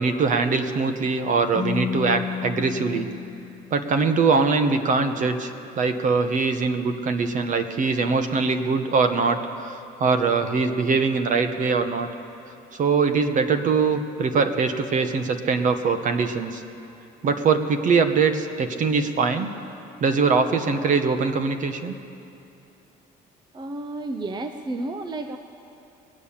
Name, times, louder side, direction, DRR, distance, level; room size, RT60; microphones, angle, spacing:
voice 1, 0.0-3.1 3.7-12.1 12.7-16.6 17.2-19.5 20.0-21.9, right 4 dB, 50° right, 8 dB, 1.0 m, -22 dB
Keyboard (musical), 1.5-4.3, left 8 dB, 15° left, 0.9 m, -32 dB
voice 2, 23.5-25.4, right 2 dB, 25° right, 7 dB, 0.6 m, -31 dB
20.5 x 8.6 x 7.3 m, 2.8 s
cardioid pair, 110°, 17 cm